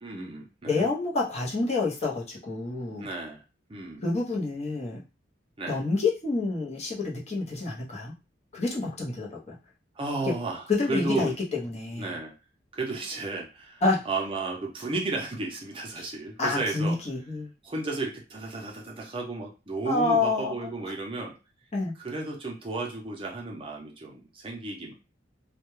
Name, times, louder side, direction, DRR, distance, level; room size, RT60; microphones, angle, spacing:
voice 1, 0.0-0.8 3.0-3.4 3.7-4.0 5.6-5.8 10.0-11.4 11.9-12.3 12.7-17.0 17.6-21.4 22.0-24.9, right 3 dB, 30° right, 0 dB, 0.5 m, -33 dB
voice 2, 0.6-3.1 4.0-5.0 5.7-8.1 8.5-9.6 10.7-12.2 13.8-14.0 16.0-16.1 16.4-17.5 19.9-20.7 21.7-21.9, left 3 dB, 35° left, -3 dB, 0.7 m, -28 dB
2.2 x 2.2 x 3.0 m, 0.29 s
head